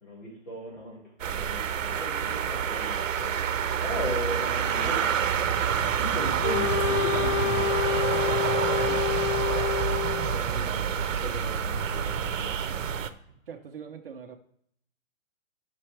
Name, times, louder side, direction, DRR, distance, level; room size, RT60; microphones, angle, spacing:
voice 1, 0.0-1.0 1.3-3.4 3.8-8.3 10.3-13.1, left 1 dB, 45° left, -4 dB, 4.0 m, -38 dB
sound 1, 1.2-13.1, right 8 dB, 75° right, 0.9 m, -28 dB
sound 2, 5.7-11.1, right 2 dB, 15° right, 0.4 m, -50 dB
Wind instrument woodwind instrument, 6.4-10.4, left 8 dB, 65° left, 0.6 m, -28 dB
voice 2, 13.5-14.4, right 7 dB, 45° right, 6 dB, 0.8 m, -44 dB
13.0 x 6.0 x 3.3 m, 0.67 s
hypercardioid pair, 175°, 38 cm